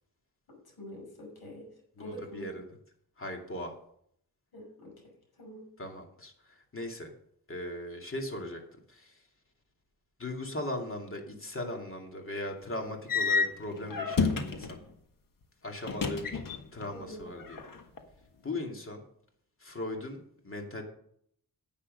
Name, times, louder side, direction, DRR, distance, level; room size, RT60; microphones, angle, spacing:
voice 1, 0.8-1.7 2.0-2.5 4.5-4.9 5.4-5.7 16.9-17.2, equal, 80° left, 0 dB, 5.9 m, -45 dB
voice 2, 2.0-2.6 3.2-3.7 5.8-7.1 7.5-8.6 8.9-9.2 10.2-14.8 15.6-16.4 16.7-17.6 18.4-19.0 19.6-20.8, left 1 dB, 35° left, 2 dB, 2.6 m, -38 dB
sound 1, 13.1-14.8 15.8-16.9 17.2-18.0, left 5 dB, 60° left, 1.6 m, -30 dB
10.0 x 8.7 x 5.3 m, 0.67 s
wide cardioid pair, 95°, 37 cm